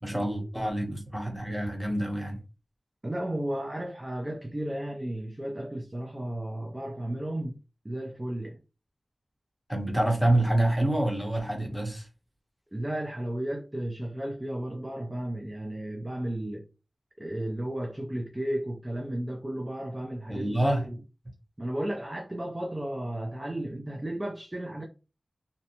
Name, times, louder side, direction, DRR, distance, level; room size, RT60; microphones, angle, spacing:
voice 1, 0.0-2.4 9.7-12.1 20.3-20.9, right 1 dB, ahead, 0.8 m, -27 dB
voice 2, 3.0-7.6 7.8-8.6 12.7-16.6 17.2-21.0 21.6-24.8, right 1 dB, 20° right, 0.4 m, -34 dB
2.6 x 2.1 x 2.8 m
wide cardioid pair, 90°, 0 cm